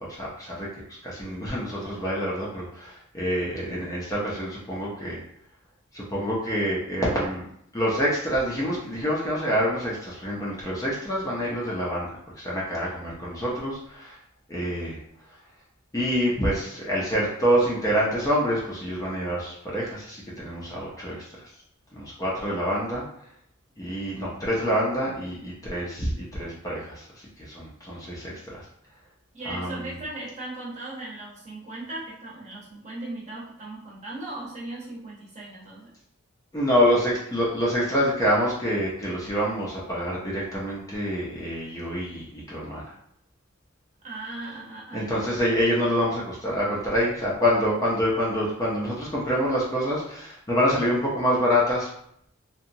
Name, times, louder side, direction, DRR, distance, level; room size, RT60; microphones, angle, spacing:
voice 1, 0.1-5.2 5.9-7.5 7.7-12.1 12.4-14.2 14.5-15.0 15.9-21.5 21.9-23.0 23.8-28.7 29.4-30.0 36.5-42.9 44.9-51.9, equal, 15° left, -5 dB, 0.5 m, -26 dB
voice 2, 29.3-35.9 44.0-45.0, right 2 dB, 35° right, -5 dB, 0.8 m, -37 dB
2.8 x 2.2 x 2.6 m, 0.71 s
head